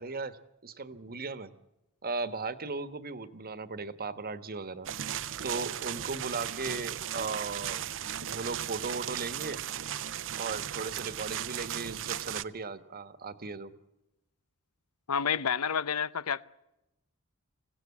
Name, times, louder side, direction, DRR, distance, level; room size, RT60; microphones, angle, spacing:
voice 1, 0.0-1.5 2.0-4.9 5.4-7.9 8.3-9.6 10.4-13.7, right 4 dB, 45° right, 1.3 m, -37 dB
sound 1, 4.9-12.4, right 10 dB, 60° right, 0.7 m, -36 dB
voice 2, 15.1-16.4, left 7 dB, 85° left, 0.7 m, -29 dB
25.5 x 17.0 x 8.4 m
head